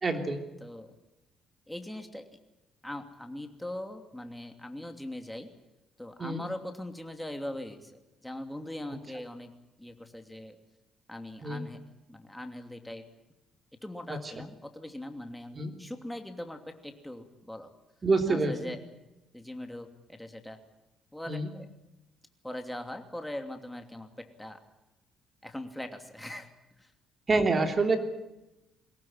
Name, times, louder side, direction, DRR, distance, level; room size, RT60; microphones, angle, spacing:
voice 1, 0.0-0.4 6.2-6.4 11.4-11.6 15.5-15.7 18.0-18.5 21.3-21.5 27.3-28.0, right 3 dB, 30° right, 6 dB, 3.3 m, -26 dB
voice 2, 0.6-0.9 1.7-2.3 2.8-5.5 6.0-9.5 9.8-10.6 11.1-11.8 12.1-13.0 13.8-17.7 18.3-18.8 19.3-20.6 21.1-21.7 22.4-24.6 25.4-26.5 26.8-26.9, left 1 dB, 5° left, 6 dB, 2.8 m, -41 dB
23.0 x 18.0 x 9.1 m, 0.95 s
cardioid pair, 115°, 0 cm